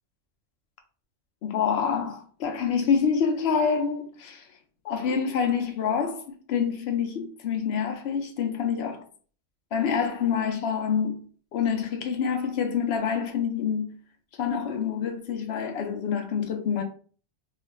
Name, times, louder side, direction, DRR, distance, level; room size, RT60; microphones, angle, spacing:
voice 1, 1.4-4.5 4.8-9.0 9.7-11.2 11.5-13.9 14.4-16.8, left 6 dB, 65° left, 0.7 m, -27 dB
2.4 x 2.4 x 2.9 m
omnidirectional pair, 1.4 m